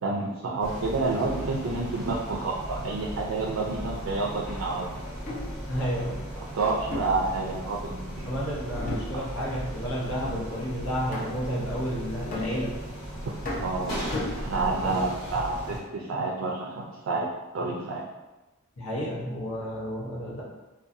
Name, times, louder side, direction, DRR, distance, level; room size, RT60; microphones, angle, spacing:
voice 1, 0.0-4.9 6.4-8.3 13.5-14.0 14.4-17.3 17.5-18.0, right 3 dB, 70° right, -2 dB, 0.4 m, -29 dB
sound 1, 0.6-15.8, equal, 70° left, 1.3 m, -37 dB
sound 2, 5.1-5.6 6.9-7.9 8.7-9.5 9.9-10.2 11.1-11.6 12.3-13.0 13.5-14.9, left 1 dB, 40° left, 0.6 m, -35 dB
voice 2, 5.7-6.2 8.2-12.8 14.8-15.1 15.3-15.4 18.8-20.4, equal, 90° left, -6 dB, 0.8 m, -31 dB
2.6 x 2.2 x 2.5 m, 1.1 s
head